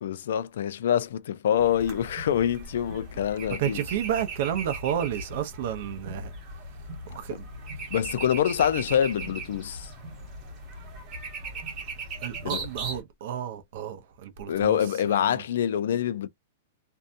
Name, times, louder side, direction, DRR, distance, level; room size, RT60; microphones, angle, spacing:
voice 1, 0.0-3.8 7.9-9.9 12.4-12.6 14.5-16.3, left 9 dB, 65° left, 0.3 m, -25 dB
sound 1, 1.6-13.0, right 3 dB, 20° right, 1.0 m, -38 dB
voice 2, 3.6-6.3 7.1-7.5 12.2-14.8 15.1-15.4, right 10 dB, 50° right, 0.6 m, -31 dB
2.6 x 2.2 x 2.5 m
supercardioid pair, 170°, 0 cm